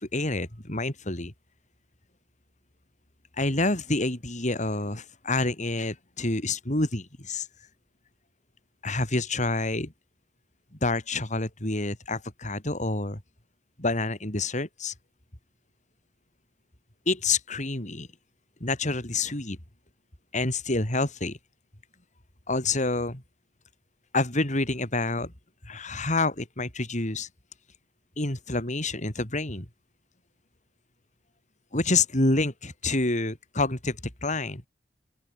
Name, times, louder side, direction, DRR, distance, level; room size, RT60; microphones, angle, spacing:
voice 1, 0.1-1.3 3.4-7.5 8.8-9.9 10.8-13.2 13.8-14.9 17.1-18.1 18.6-19.6 20.3-21.4 22.5-23.2 24.1-25.3 25.6-27.3 28.2-29.7 31.7-34.6, left 2 dB, 45° left, 4.5 m, -28 dB
open air
head